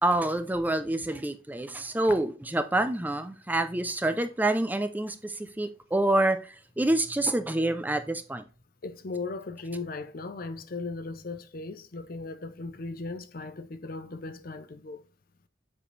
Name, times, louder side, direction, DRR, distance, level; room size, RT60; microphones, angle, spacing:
voice 1, 0.0-8.4, right 1 dB, 10° right, 0.4 m, -27 dB
voice 2, 8.8-15.0, left 3 dB, 50° left, 0.6 m, -37 dB
7.4 x 4.8 x 3.2 m
head